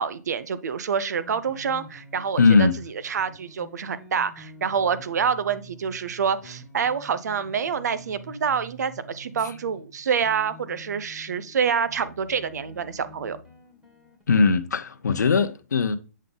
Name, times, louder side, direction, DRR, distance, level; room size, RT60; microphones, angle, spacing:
voice 1, 0.0-2.7 3.0-13.4, right 6 dB, 70° right, 0.6 m, -27 dB
sound 1, 1.2-14.2, right 1 dB, 10° right, 2.1 m, -48 dB
voice 2, 2.4-2.8 9.4-9.5 14.3-16.0, left 4 dB, 85° left, 0.6 m, -20 dB
7.3 x 3.8 x 3.5 m
hypercardioid pair, 135°, 9 cm